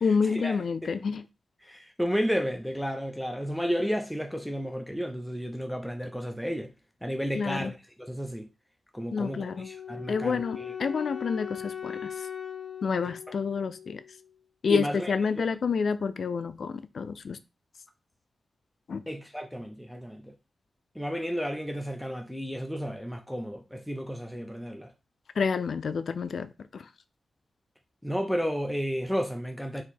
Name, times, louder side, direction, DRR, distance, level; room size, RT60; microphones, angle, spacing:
voice 1, 0.0-1.2 7.3-7.7 9.1-9.7 10.1-12.3 12.8-14.0 14.6-17.4 18.9-19.0 25.4-26.9, left 5 dB, 70° left, 0.3 m, -29 dB
voice 2, 1.6-6.7 7.0-7.8 8.1-8.5 8.9-10.7 14.7-15.4 19.1-20.3 21.0-24.9 28.0-29.8, equal, ahead, 0.6 m, -32 dB
Wind instrument woodwind instrument, 9.2-14.3, left 8 dB, 45° left, 1.1 m, -40 dB
4.0 x 2.9 x 4.2 m
cardioid pair, 80°, 0 cm